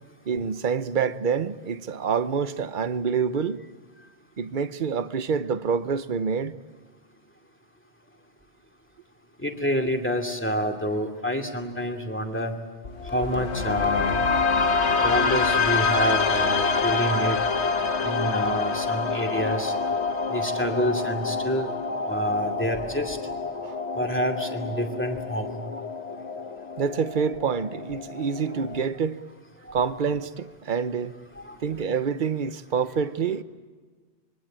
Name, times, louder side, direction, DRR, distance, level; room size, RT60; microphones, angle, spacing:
voice 1, 0.3-3.6 4.4-6.5 23.6-23.8 26.8-29.2 29.7-31.2 31.6-33.4, right 6 dB, 45° right, 1.0 m, -27 dB
voice 2, 9.4-12.5 13.1-14.2 15.0-17.4 18.0-19.7 20.3-21.7 22.1-23.2 23.9-25.6 31.4-31.5, left 1 dB, 10° left, 2.5 m, -27 dB
sound 1, 12.8-28.8, left 4 dB, 75° left, 1.5 m, -27 dB
25.5 x 23.0 x 8.9 m
omnidirectional pair, 1.2 m